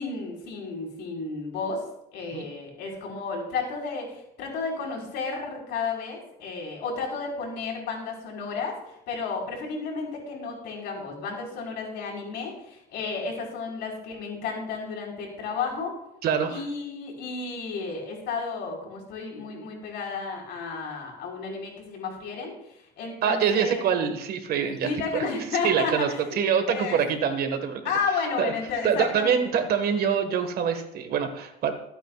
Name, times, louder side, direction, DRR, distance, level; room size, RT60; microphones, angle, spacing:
voice 1, 0.0-1.8 2.1-15.9 16.5-23.9 24.8-26.4 26.7-27.0 27.8-29.4, left 4 dB, 80° left, -1 dB, 4.7 m, -32 dB
voice 2, 16.2-16.6 23.2-25.2 25.6-26.1 26.4-27.8 28.4-28.5 28.8-31.8, right 7 dB, 65° right, 7 dB, 1.6 m, -25 dB
22.5 x 9.1 x 2.4 m, 0.81 s
cardioid pair, 110°, 17 cm